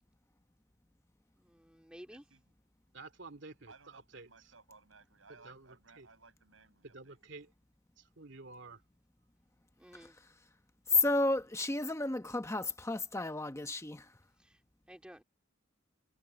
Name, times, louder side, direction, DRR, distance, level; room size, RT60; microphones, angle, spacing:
voice 1, 1.4-2.2 9.8-10.1 14.9-15.2, equal, 5° right, 2.6 m, -52 dB
voice 2, 2.1-2.5 3.7-7.2, right 4 dB, 85° right, 6.4 m, -60 dB
voice 3, 2.9-4.3 5.4-6.1 6.8-7.5 8.0-8.8, right 3 dB, 65° right, 2.7 m, -51 dB
voice 4, 10.9-14.1, left 3 dB, 15° left, 0.9 m, -32 dB
head